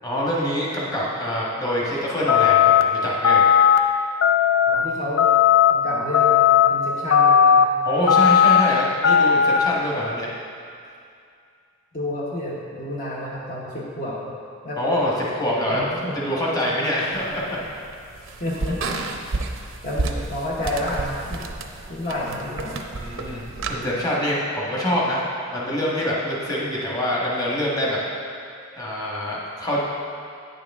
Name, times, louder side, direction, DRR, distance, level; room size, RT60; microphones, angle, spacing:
voice 1, 0.0-3.5 7.8-10.3 14.8-15.9 16.1-17.6 22.9-25.2 25.5-28.0 28.8-29.8, equal, 20° left, -5 dB, 1.3 m, -25 dB
sound 1, 2.3-2.8 3.2-3.8 4.2-4.7 5.2-5.7 6.1-6.7 7.1-7.6 8.1-8.6 9.0-9.6, left 8 dB, 85° left, 0.4 m, -15 dB
voice 2, 4.7-5.3 5.7-7.6 11.9-14.3 14.6-14.8 15.7-16.2 16.6-16.8 18.4-19.0 19.8-21.5 21.9-22.8, left 1 dB, 45° left, -6 dB, 1.0 m, -30 dB
sound 2, 17.1-23.8, right 3 dB, 80° right, 0.6 m, -31 dB
9.2 x 6.6 x 3.6 m, 2.4 s
head